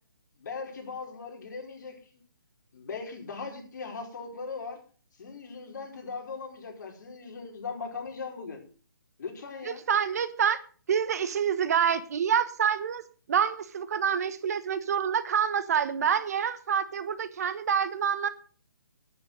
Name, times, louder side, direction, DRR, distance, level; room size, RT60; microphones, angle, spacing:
voice 1, 0.4-1.9 2.7-4.8 5.2-8.6 9.2-9.8, left 5 dB, 55° left, 1 dB, 5.0 m, -39 dB
voice 2, 9.6-10.6 10.9-13.0 13.3-18.3, right 7 dB, 45° right, 13 dB, 1.3 m, -27 dB
10.0 x 9.2 x 7.6 m, 0.41 s
hypercardioid pair, 155°, 11 cm